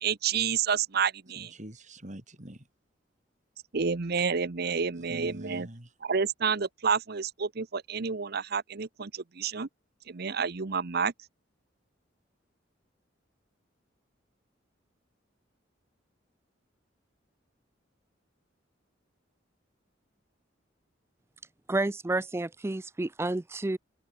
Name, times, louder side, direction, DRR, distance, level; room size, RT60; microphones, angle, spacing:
voice 1, 0.0-1.5 3.7-5.7 6.0-9.7 10.1-11.1, right 6 dB, 55° right, 0.8 m, -29 dB
voice 2, 1.4-2.7 5.0-5.9, right 1 dB, 40° right, 3.6 m, -44 dB
voice 3, 21.7-23.8, right 2 dB, 15° right, 0.4 m, -30 dB
open air
head